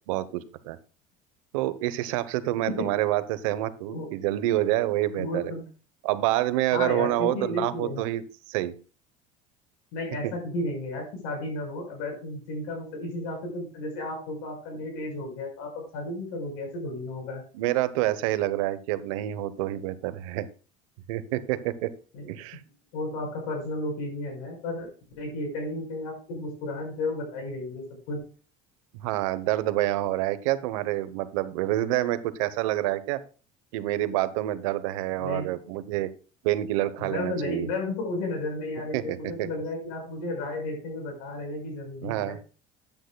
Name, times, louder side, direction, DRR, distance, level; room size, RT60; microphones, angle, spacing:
voice 1, 0.1-0.8 1.5-5.5 6.0-8.2 8.5-8.7 10.2-10.3 17.5-20.5 21.1-21.9 22.3-22.6 28.9-33.2 33.7-36.1 36.4-37.7 38.9-39.5 42.0-42.4, right 15 dB, 90° right, 14 dB, 0.9 m, -27 dB
voice 2, 5.2-5.6 6.7-8.0 9.9-17.4 22.1-22.3 22.9-24.9 25.2-28.2 35.2-35.5 37.0-42.4, left 2 dB, 80° left, 2 dB, 5.5 m, -33 dB
13.0 x 9.2 x 2.3 m, 0.36 s
supercardioid pair, 115°, 17 cm